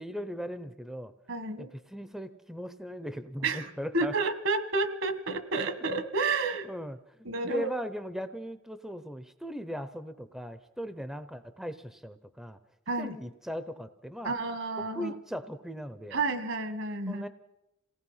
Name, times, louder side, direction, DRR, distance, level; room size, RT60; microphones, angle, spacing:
voice 1, 0.0-1.1 1.6-4.1 6.6-12.6 13.0-14.3 14.8-16.2 17.1-17.3, equal, ahead, 11 dB, 0.6 m, -38 dB
voice 2, 1.3-1.7 3.4-6.7 7.2-7.7 12.9-13.2 14.2-15.1 16.1-17.2, right 3 dB, 65° right, 9 dB, 1.7 m, -30 dB
27.0 x 18.0 x 5.6 m, 0.92 s
head